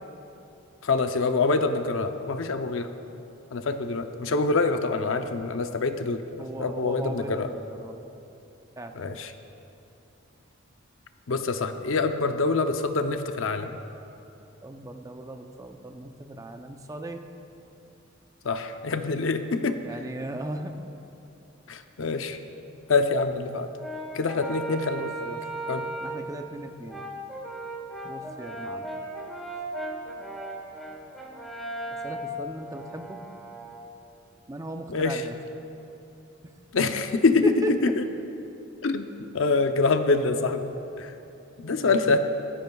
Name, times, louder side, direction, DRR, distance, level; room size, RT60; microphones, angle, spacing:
voice 1, 0.8-2.9 3.5-7.5 9.0-9.3 11.3-13.8 18.4-19.8 21.7-22.4 22.9-23.7 24.1-25.1 25.7-25.9 34.9-35.2 36.7-38.0 38.8-39.1 39.3-40.7 41.0-41.1 41.6-42.2, left 3 dB, 70° left, 7 dB, 0.6 m, -25 dB
voice 2, 6.4-8.0 8.8-9.0 14.6-17.2 19.8-20.7 24.9-25.4 26.0-27.1 28.0-28.9 32.0-33.2 34.5-35.3 37.4-37.9 41.8-42.2, right 1 dB, 15° right, 5 dB, 0.6 m, -36 dB
Brass instrument, 23.8-26.3 26.9-33.9, right 2 dB, ahead, 1.7 m, -36 dB
18.5 x 15.0 x 2.3 m, 2.9 s
head